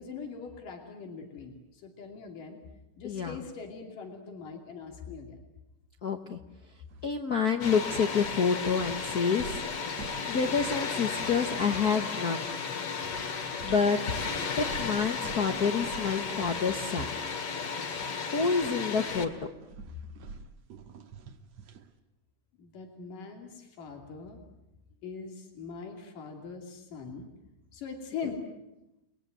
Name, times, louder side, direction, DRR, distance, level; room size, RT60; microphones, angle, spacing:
voice 1, 0.0-2.6 3.0-5.4 22.6-24.4 25.0-27.3 27.7-28.4, left 5 dB, 90° left, 3 dB, 4.3 m, -42 dB
voice 2, 3.0-3.4 6.0-6.4 7.0-9.6 10.2-12.5 13.6-14.2 14.5-17.2 18.3-19.5, left 5 dB, 70° left, 6 dB, 0.8 m, -28 dB
sound 1, 6.9-7.1 7.5-12.0 12.3-12.5 13.0-18.1 18.4-21.9, right 4 dB, 60° right, 2.5 m, -47 dB
Water, 7.6-19.3, left 5 dB, 50° left, 2.9 m, -34 dB
30.0 x 21.0 x 9.2 m, 0.94 s
omnidirectional pair, 3.7 m